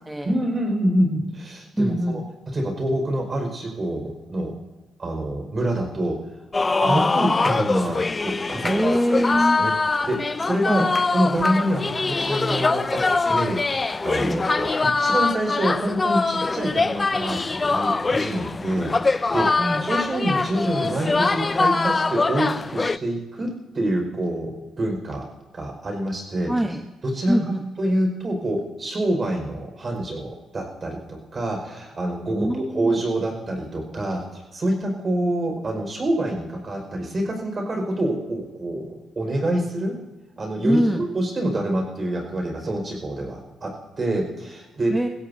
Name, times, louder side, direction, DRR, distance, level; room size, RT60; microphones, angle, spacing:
voice 1, 0.2-2.2 2.5-4.5 5.0-6.2 6.8-8.8 9.3-9.7 10.1-10.9 11.1-25.2 25.5-26.5 27.0-27.4 27.8-40.0 40.4-45.0, right 1 dB, 35° right, 3 dB, 5.2 m, -26 dB
voice 2, 1.7-2.2 6.8-7.1 8.6-9.6 10.6-10.9 14.1-14.5 19.6-19.8 26.5-26.8 27.3-27.6 32.3-33.0 40.6-41.0 44.9-45.1, equal, 10° right, 4 dB, 1.1 m, -23 dB
sound 1, 6.5-23.0, left 3 dB, 25° left, 0.4 m, -23 dB
22.5 x 16.0 x 2.8 m, 1.1 s
cardioid pair, 90°, 0 cm